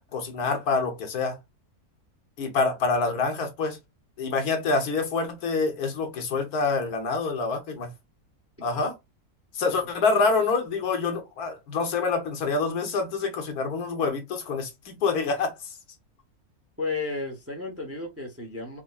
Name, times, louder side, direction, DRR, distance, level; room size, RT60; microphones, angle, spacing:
voice 1, 0.1-1.4 2.4-3.8 4.2-7.9 8.6-9.0 9.5-15.7, left 4 dB, 75° left, 1.4 m, -26 dB
voice 2, 16.8-18.8, left 3 dB, 10° right, 0.7 m, -33 dB
5.1 x 2.2 x 2.3 m
omnidirectional pair, 1.6 m